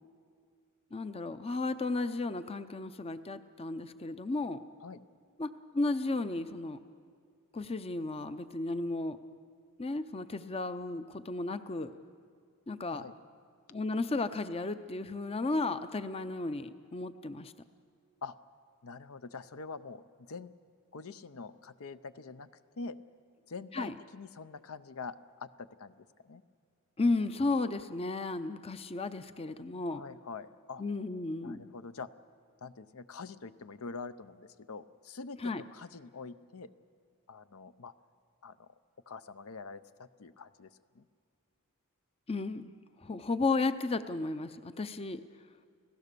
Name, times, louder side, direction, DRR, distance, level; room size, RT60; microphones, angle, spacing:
voice 1, 0.9-4.6 5.4-6.8 7.5-9.2 9.8-11.9 12.7-13.1 13.7-17.5 23.7-23.9 27.0-30.0 30.8-31.7 35.4-35.6 42.3-42.7 43.0-45.2, left 3 dB, 25° left, 11 dB, 0.6 m, -34 dB
voice 2, 18.8-20.5 20.9-22.5 22.8-23.0 23.5-26.4 29.9-30.8 31.4-32.1 32.6-36.7 37.3-37.9 38.4-38.7 39.1-41.1, left 4 dB, 70° left, 12 dB, 0.6 m, -45 dB
30.0 x 16.5 x 6.8 m, 2.2 s
head